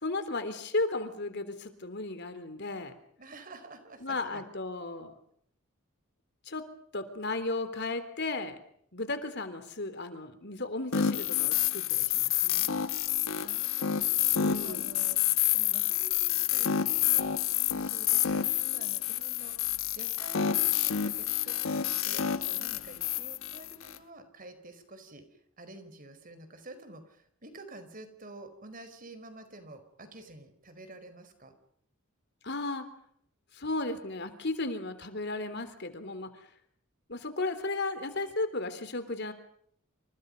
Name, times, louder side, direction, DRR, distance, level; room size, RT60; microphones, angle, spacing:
voice 1, 0.0-2.9 4.0-5.1 6.5-6.6 6.9-8.6 8.9-12.7 14.3-14.9 32.4-32.9 33.5-36.3 37.1-39.3, left 2 dB, 55° left, 10 dB, 3.5 m, -34 dB
voice 2, 3.2-4.5 13.3-15.2 15.5-18.4 18.7-31.5, right 2 dB, 40° right, 9 dB, 4.9 m, -49 dB
sound 1, 10.9-24.0, left 10 dB, 75° left, 1.1 m, -28 dB
28.5 x 27.5 x 5.4 m, 0.65 s
head